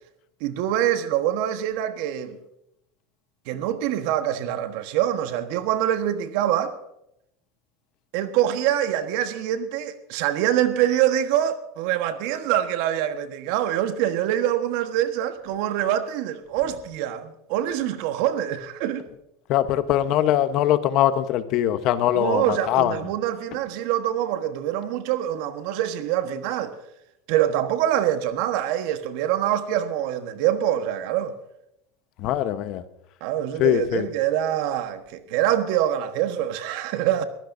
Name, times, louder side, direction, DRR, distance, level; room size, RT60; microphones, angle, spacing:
voice 1, 0.4-2.4 3.5-6.7 8.1-19.0 22.1-26.7 27.3-31.3 33.2-37.2, right 11 dB, 65° right, 1.3 m, -25 dB
voice 2, 19.5-23.0 32.2-32.8 33.6-34.1, left 12 dB, 55° left, 1.1 m, -22 dB
22.0 x 15.0 x 2.7 m
supercardioid pair, 105°, 0 cm